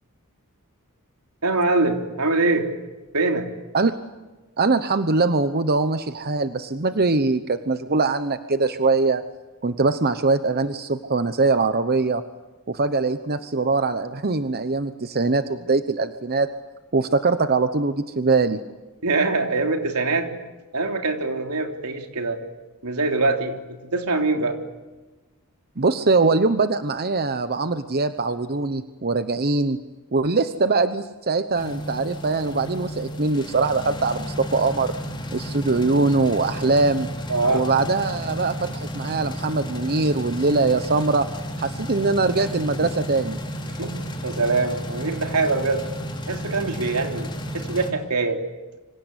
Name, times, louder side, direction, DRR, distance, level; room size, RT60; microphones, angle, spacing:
voice 1, 1.4-2.7 3.1-3.5 19.0-20.3 20.7-22.4 22.8-24.6 37.3-37.7 43.8-43.9 44.2-45.9 46.3-47.3 47.5-48.4, right 3 dB, 85° right, 4 dB, 3.5 m, -23 dB
voice 2, 4.6-9.2 9.6-12.2 12.7-16.5 16.9-18.6 25.8-29.8 30.1-34.9 35.3-37.1 37.5-41.3 41.6-43.4, right 3 dB, 45° right, 10 dB, 1.0 m, -22 dB
sound 1, 31.6-47.9, equal, 20° left, 3.9 m, -33 dB
27.0 x 25.5 x 8.3 m, 1.2 s
head